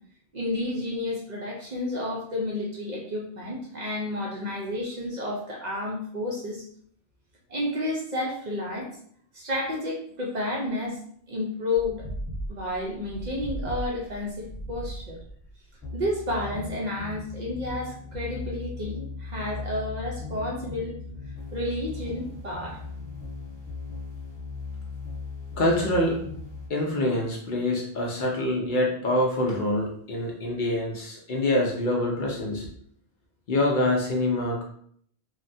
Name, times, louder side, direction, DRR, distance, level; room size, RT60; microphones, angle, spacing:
voice 1, 0.3-6.6 7.5-8.9 9.3-11.0 11.3-12.1 12.5-15.2 15.9-21.0 21.5-22.8, left 1 dB, 50° right, -2 dB, 0.6 m, -31 dB
sound 1, 11.7-26.7, left 2 dB, 20° left, 1.0 m, -37 dB
voice 2, 25.6-26.2 26.7-32.6 33.5-34.6, left 1 dB, 55° left, -1 dB, 0.7 m, -25 dB
3.1 x 2.1 x 2.6 m, 0.62 s
omnidirectional pair, 1.1 m